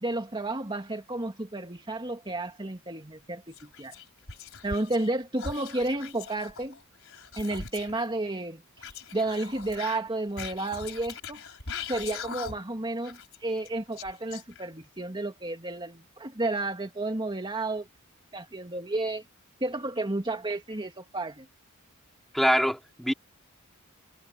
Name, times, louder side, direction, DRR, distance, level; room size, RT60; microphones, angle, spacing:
voice 1, 0.0-3.9 4.6-6.8 7.4-8.9 9.1-11.4 11.9-17.9 18.3-19.2 19.6-21.5, right 2 dB, 20° right, 2.3 m, -32 dB
Whispering, 3.5-5.1 5.4-8.0 8.8-12.8 13.0-14.9, left 5 dB, 65° left, 6.0 m, -41 dB
voice 2, 22.3-23.1, equal, ahead, 3.8 m, -24 dB
head